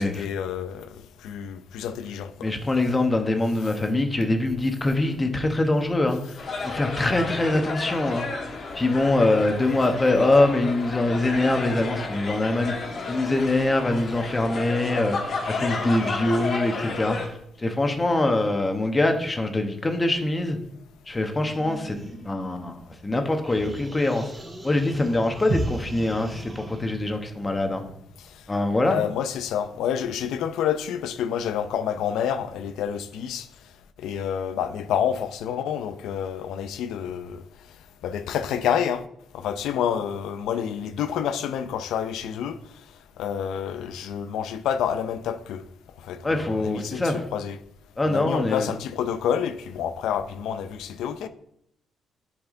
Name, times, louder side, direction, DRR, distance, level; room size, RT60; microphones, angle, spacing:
voice 1, 0.0-2.5 28.8-33.5 34.0-37.4 38.0-39.0 39.3-42.6 43.2-45.6 46.1-47.6 48.1-51.3, left 8 dB, 85° left, 0.6 m, -28 dB
voice 2, 2.4-8.3 8.7-12.7 13.1-20.6 21.1-22.0 22.2-24.3 24.6-27.8 28.5-29.0 46.2-47.2 48.0-48.7, left 2 dB, 20° left, 1.3 m, -24 dB
sound 1, 6.4-17.3, left 4 dB, 55° left, 1.6 m, -32 dB
sound 2, 21.4-23.1 23.4-26.9, right 1 dB, 10° right, 2.4 m, -42 dB
sound 3, 25.5-29.4 29.7-29.8, right 2 dB, 65° right, 2.9 m, -34 dB
10.5 x 4.7 x 3.9 m
cardioid pair, 90°, 0 cm